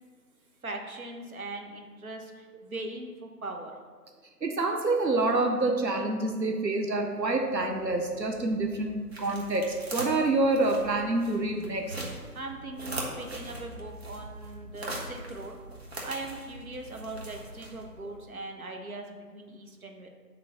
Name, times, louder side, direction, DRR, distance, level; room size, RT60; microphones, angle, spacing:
voice 1, 0.6-3.7 12.3-15.5 16.0-20.1, right 2 dB, 60° right, 2 dB, 1.2 m, -40 dB
voice 2, 4.4-12.0, right 2 dB, 90° right, 3 dB, 1.0 m, -27 dB
sound 1, 7.1-18.1, right 1 dB, 40° right, 1.3 m, -42 dB
7.8 x 3.7 x 6.1 m, 1.5 s
figure-of-eight pair, 155°, 49 cm